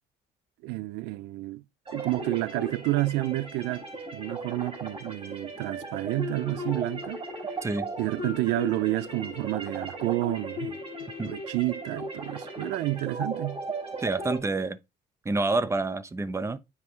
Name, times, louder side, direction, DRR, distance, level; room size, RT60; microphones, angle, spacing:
voice 1, 0.6-1.6 1.9-3.9 4.1-7.2 8.0-10.8 11.2-13.6, right 18 dB, 90° right, 0.4 m, -29 dB
sound 1, 1.9-14.4, right 1 dB, 35° right, 4.6 m, -37 dB
voice 2, 7.6-7.9 11.2-11.3 14.0-14.8 15.2-16.6, right 3 dB, 15° right, 0.9 m, -28 dB
9.4 x 5.6 x 3.2 m
cardioid pair, 110°, 17 cm